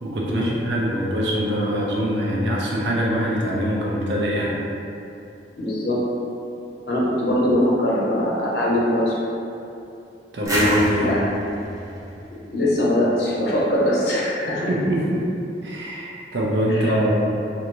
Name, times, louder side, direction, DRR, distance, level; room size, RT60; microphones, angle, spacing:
voice 1, 0.0-4.6 10.3-11.1 14.7-15.2 15.6-17.2, equal, 75° right, -4 dB, 0.6 m, -23 dB
voice 2, 5.6-6.0 6.9-9.2 10.9-11.2 12.5-14.7 16.7-16.9, left 1 dB, 65° left, -6 dB, 0.8 m, -22 dB
sound 1, 10.5-13.2, equal, 20° right, 0.6 m, -28 dB
3.5 x 2.6 x 3.0 m, 2.7 s
head